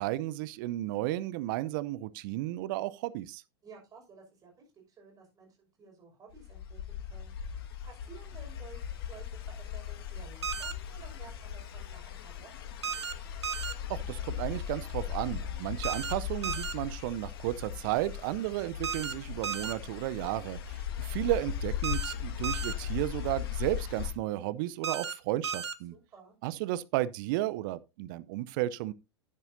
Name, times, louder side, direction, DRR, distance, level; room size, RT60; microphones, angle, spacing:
voice 1, 0.0-3.4 13.9-25.9 26.4-28.9, right 16 dB, 50° right, 0.7 m, -33 dB
voice 2, 3.6-8.8 9.1-12.8 25.9-26.4, right 5 dB, 25° right, 5.9 m, -54 dB
sound 1, 6.3-24.1, left 9 dB, 60° left, 1.8 m, -38 dB
sound 2, 10.4-10.7 12.8-13.1 13.4-13.7 15.8-16.1 16.4-16.7 18.8-19.1 19.4-19.7 21.8-22.1 22.4-22.7 24.8-25.1 25.4-25.7, right 6 dB, 80° right, 0.8 m, -34 dB
11.0 x 9.8 x 2.7 m
figure-of-eight pair, 95°, 14 cm